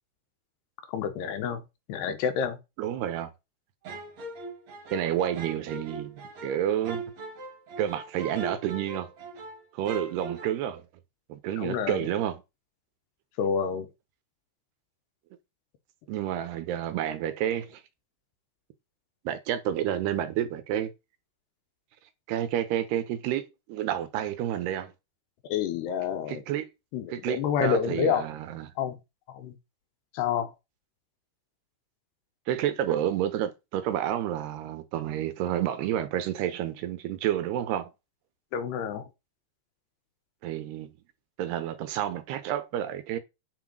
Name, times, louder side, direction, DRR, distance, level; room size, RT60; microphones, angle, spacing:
voice 1, 0.9-1.6 1.9-2.6 11.6-12.1 13.4-13.9 25.5-26.4 26.9-28.2 28.8-29.0 29.3-29.5 30.1-30.5 38.5-39.1, left 7 dB, 75° left, 3.4 m, -28 dB
voice 2, 2.8-3.3 4.9-7.0 7.8-9.1 9.7-10.9 11.3-12.4 16.1-17.8 19.2-20.9 22.3-24.9 26.3-26.7 27.1-28.7 32.5-37.9 40.4-40.9 41.4-43.2, right 11 dB, 75° right, 3.1 m, -30 dB
sound 1, 3.9-9.6 9.9-10.5, right 2 dB, 45° right, 3.0 m, -39 dB
9.5 x 6.2 x 6.2 m
omnidirectional pair, 4.9 m